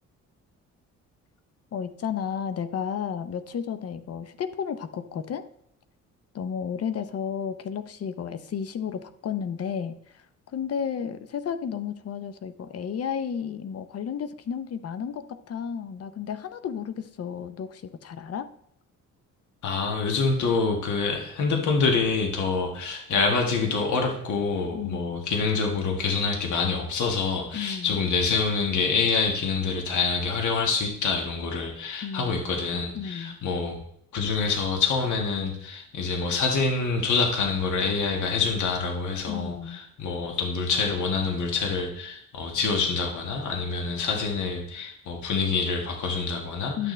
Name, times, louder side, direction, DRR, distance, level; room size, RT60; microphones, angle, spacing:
voice 1, 1.7-5.4 6.3-18.5 24.7-25.3 27.5-28.0 32.0-32.4 33.0-33.4 39.3-39.8 46.8-46.9, left 7 dB, 50° left, 11 dB, 0.7 m, -32 dB
voice 2, 19.6-33.8 34.1-46.9, left 4 dB, 70° left, 2 dB, 1.5 m, -26 dB
11.5 x 6.6 x 3.2 m, 0.69 s
cardioid pair, 95°, 31 cm